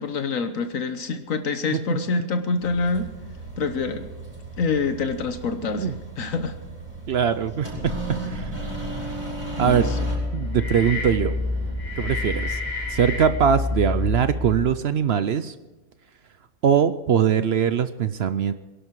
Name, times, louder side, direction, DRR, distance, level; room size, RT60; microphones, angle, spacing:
voice 1, 0.0-3.1 3.6-4.1 4.6-6.5 9.6-10.0, left 4 dB, 70° left, 8 dB, 1.4 m, -26 dB
sound 1, 2.6-10.2, right 2 dB, 25° right, 6.5 m, -35 dB
voice 2, 7.1-8.5 9.6-9.9 10.3-11.3 12.0-12.6 12.9-15.5 16.6-18.5, right 8 dB, 60° right, 12 dB, 0.7 m, -22 dB
sound 2, 9.4-14.7, left 2 dB, 30° left, 3.7 m, -28 dB
22.5 x 11.5 x 4.7 m, 1.1 s
omnidirectional pair, 1.5 m